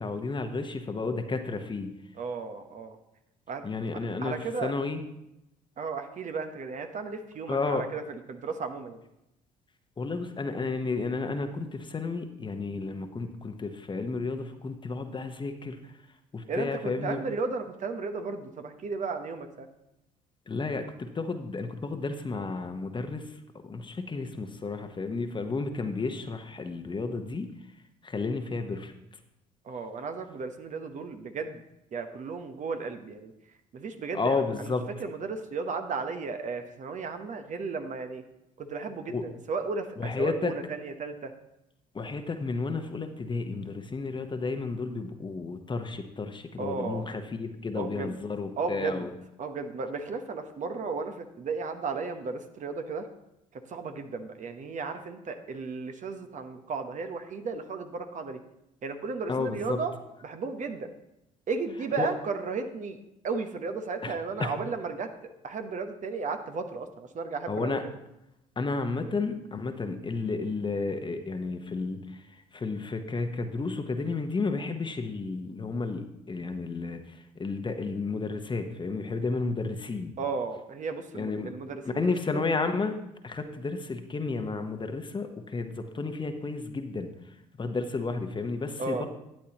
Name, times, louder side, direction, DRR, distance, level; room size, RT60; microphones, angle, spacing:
voice 1, 0.0-1.9 3.6-4.3 4.6-5.0 7.5-7.8 10.0-15.8 16.3-17.2 20.5-23.2 23.6-27.5 28.0-28.9 34.1-34.8 39.1-39.2 40.0-40.5 41.9-49.1 59.3-59.8 62.0-62.1 64.0-64.1 64.4-64.5 67.5-67.8 68.6-72.0 72.5-77.0 77.4-80.1 81.1-81.5 81.9-82.9 83.2-87.1 87.6-89.1, left 3 dB, 30° left, 7 dB, 1.1 m, -32 dB
voice 2, 2.2-3.0 3.5-3.6 4.2-4.7 5.8-9.0 16.5-19.7 29.6-31.6 31.9-33.3 33.7-38.2 38.6-41.3 46.6-47.1 47.7-48.2 48.6-49.1 49.4-53.1 53.7-58.4 58.8-59.9 60.2-60.9 61.5-63.0 63.2-65.1 65.4-67.8 80.2-82.4 88.8-89.1, right 4 dB, 50° right, 7 dB, 1.0 m, -34 dB
12.0 x 8.6 x 3.0 m, 0.86 s
hypercardioid pair, 65°, 17 cm